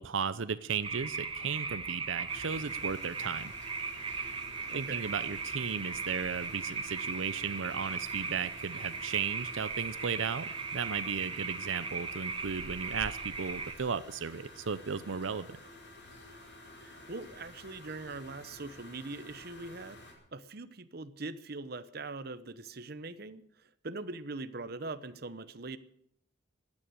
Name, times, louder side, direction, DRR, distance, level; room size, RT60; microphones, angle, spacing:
voice 1, 0.0-3.5 4.7-15.6, right 6 dB, 90° right, 14 dB, 0.6 m, -35 dB
sound 1, 0.8-13.7, right 4 dB, 30° right, 1.5 m, -38 dB
sound 2, 2.3-20.1, left 1 dB, 65° left, 5.1 m, -51 dB
voice 2, 4.7-5.1 16.8-20.0 20.3-25.8, right 3 dB, 55° right, 13 dB, 0.9 m, -42 dB
15.5 x 9.8 x 8.9 m, 0.72 s
head